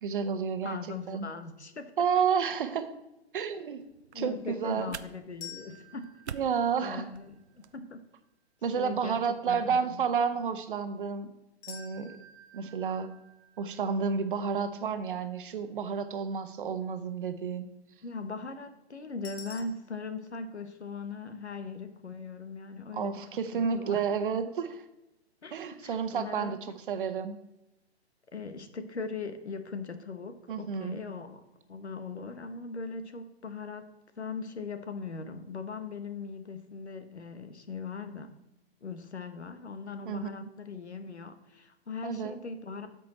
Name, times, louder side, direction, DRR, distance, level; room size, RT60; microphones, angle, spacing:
voice 1, 0.0-0.8 1.1-1.3 2.0-2.9 3.3-3.8 4.1-5.0 6.3-7.1 8.6-11.3 11.7-12.2 12.5-13.1 13.6-17.7 22.9-24.8 25.5-27.4 30.5-31.0 40.0-40.5 42.0-42.3, right 6 dB, 50° right, 1.0 m, -31 dB
voice 2, 0.6-1.9 4.1-6.1 6.7-7.3 7.6-8.0 8.7-10.1 18.0-23.2 23.5-24.0 25.4-26.5 28.3-31.4 31.7-38.3 38.8-42.9, left 4 dB, 80° left, 1.2 m, -40 dB
sound 1, 3.8-7.8, right 7 dB, 80° right, 0.6 m, -48 dB
sound 2, 5.4-7.5 11.6-14.7 19.2-19.6, left 5 dB, 20° left, 1.5 m, -49 dB
13.0 x 5.2 x 4.2 m
figure-of-eight pair, 130°, 33 cm